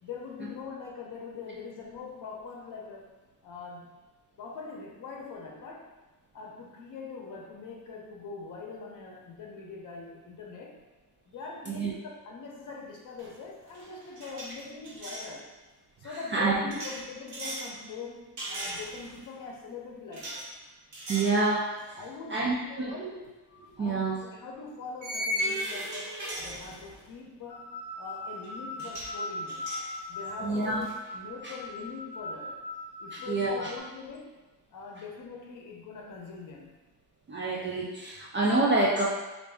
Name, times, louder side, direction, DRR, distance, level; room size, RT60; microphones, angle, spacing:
voice 1, 0.0-3.1 3.4-3.9 4.4-5.9 6.3-10.8 11.3-15.5 16.0-20.4 22.0-23.1 23.8-29.7 30.1-30.9 31.1-32.6 33.0-34.4 34.7-36.8, left 4 dB, 50° left, 0 dB, 0.7 m, -43 dB
sound 1, 13.2-13.4 13.7-15.3 16.7-17.7 18.4-19.2 20.1-20.5 20.9-21.4 21.8-22.0 23.5-23.6 25.0-27.1 28.4-28.5 28.8-29.2 29.5-31.0, equal, 75° right, 1.2 m, -37 dB
voice 2, 21.1-22.0 22.3-23.1 23.8-24.2 30.4-30.8 31.4-31.5 33.1-33.7 37.3-39.0, right 3 dB, 30° right, -5 dB, 0.4 m, -27 dB
sound 2, 27.5-33.8, left 1 dB, 5° left, 0.8 m, -40 dB
3.4 x 2.6 x 3.4 m, 1.1 s
cardioid pair, 145°, 41 cm